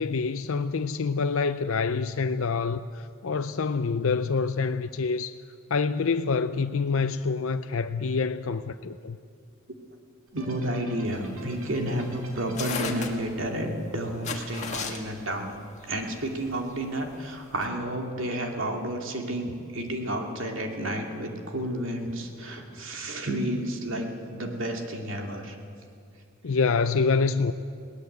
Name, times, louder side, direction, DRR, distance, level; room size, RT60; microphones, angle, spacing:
voice 1, 0.0-5.4 5.7-9.2 26.4-27.5, left 4 dB, 70° left, 0.5 m, -26 dB
voice 2, 10.3-15.5 15.8-25.6, right 1 dB, 65° right, 2.6 m, -31 dB
sound 1, 10.3-14.6, right 1 dB, 85° right, 4.2 m, -47 dB
sound 2, 11.1-17.7, left 5 dB, 30° left, 1.8 m, -37 dB
21.0 x 18.0 x 8.0 m
head